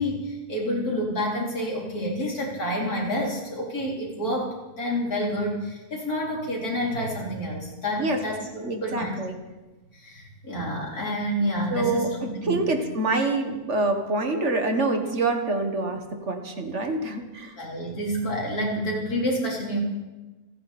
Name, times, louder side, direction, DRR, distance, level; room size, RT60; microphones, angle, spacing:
voice 1, 0.0-9.1 9.9-12.1 12.4-12.6 17.6-19.8, equal, 90° left, -2 dB, 4.5 m, -28 dB
voice 2, 8.6-9.3 11.7-17.6, right 2 dB, 50° right, 5 dB, 2.0 m, -26 dB
29.0 x 10.0 x 4.3 m, 1.1 s
omnidirectional pair, 1.6 m